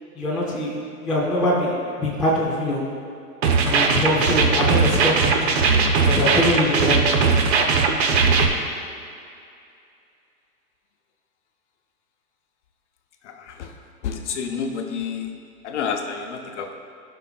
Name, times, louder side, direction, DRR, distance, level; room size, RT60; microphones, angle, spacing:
voice 1, 0.1-2.8 3.6-5.5 6.0-7.2, left 1 dB, ahead, -11 dB, 0.5 m, -23 dB
sound 1, 3.4-8.5, right 5 dB, 45° right, 0.8 m, -19 dB
voice 2, 13.2-13.7 14.0-15.3 15.6-16.7, left 6 dB, 50° left, 4 dB, 0.8 m, -29 dB
15.5 x 5.8 x 2.4 m, 2.5 s
hypercardioid pair, 145°, 46 cm